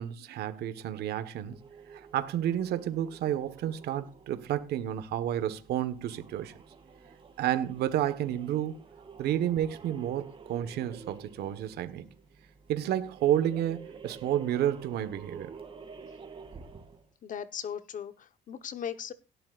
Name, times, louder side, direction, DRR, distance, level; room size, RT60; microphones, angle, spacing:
voice 1, 0.0-1.6 1.9-6.5 7.4-8.7 9.2-12.0 12.7-15.5, right 11 dB, 70° right, 1.5 m, -30 dB
sound 1, 1.4-17.1, right 5 dB, 30° right, 2.7 m, -50 dB
voice 2, 17.2-19.1, left 8 dB, 50° left, 1.3 m, -38 dB
17.5 x 12.0 x 2.6 m
cardioid pair, 110°, 17 cm